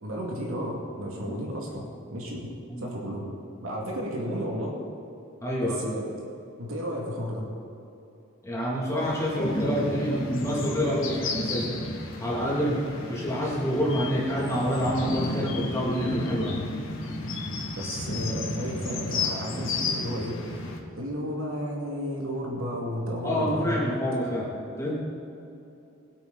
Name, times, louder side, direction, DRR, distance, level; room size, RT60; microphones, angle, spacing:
voice 1, 0.0-2.5 2.8-3.2 3.6-4.8 5.6-6.1 6.6-7.5 17.7-20.4 20.9-23.8, equal, 80° right, -2 dB, 2.4 m, -32 dB
voice 2, 5.4-5.8 8.4-11.8 12.2-16.6 23.2-24.5 24.8-24.9, equal, 15° left, -6 dB, 2.6 m, -27 dB
sound 1, 9.0-20.8, left 2 dB, 65° left, 2.0 m, -33 dB
21.5 x 8.3 x 4.1 m, 2.7 s
head